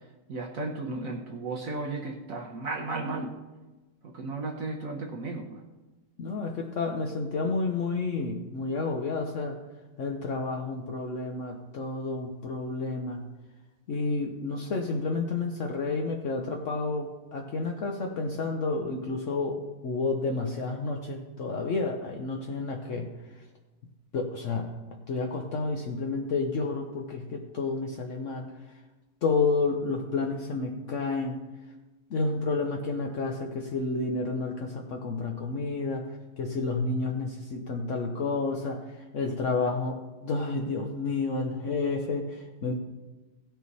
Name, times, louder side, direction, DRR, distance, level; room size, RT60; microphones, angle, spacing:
voice 1, 0.3-3.3 4.0-5.6, right 3 dB, 55° right, 2 dB, 1.0 m, -34 dB
voice 2, 6.2-9.6 10.0-13.3 13.9-23.4 24.1-24.7 25.1-28.5 29.2-31.3 32.1-42.7, left 3 dB, 60° left, 2 dB, 0.7 m, -30 dB
16.5 x 6.3 x 4.1 m, 1.2 s
omnidirectional pair, 2.3 m